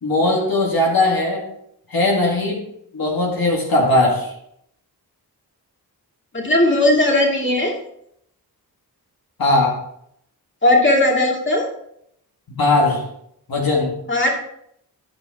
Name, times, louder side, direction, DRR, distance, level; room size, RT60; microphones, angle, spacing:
voice 1, 0.0-1.5 1.9-2.6 2.9-4.3 9.4-9.8 12.5-13.0 13.5-14.0, left 2 dB, 60° left, -2 dB, 1.9 m, -19 dB
voice 2, 6.3-7.8 10.6-11.7 14.1-14.3, left 1 dB, 30° left, -1 dB, 2.4 m, -17 dB
12.5 x 5.2 x 3.6 m, 0.74 s
cardioid pair, 70°, 39 cm